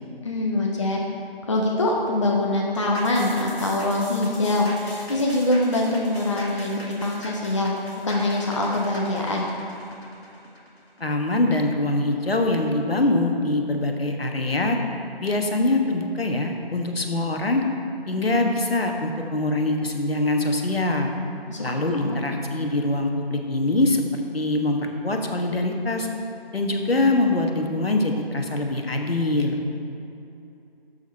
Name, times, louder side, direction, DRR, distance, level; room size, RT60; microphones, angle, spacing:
voice 1, 0.2-1.0 1.5-7.8 8.0-9.5 21.5-21.7 22.0-22.2, left 2 dB, 30° left, -1 dB, 0.8 m, -24 dB
sound 1, 2.9-11.7 12.1-12.2, left 1 dB, 90° left, 1.7 m, -42 dB
voice 2, 11.0-14.8 15.2-17.6 18.1-21.1 21.6-24.0 24.3-26.1 26.5-29.6, left 2 dB, 75° left, 3 dB, 1.4 m, -23 dB
12.5 x 6.9 x 4.2 m, 2.8 s
figure-of-eight pair, 160°, 30 cm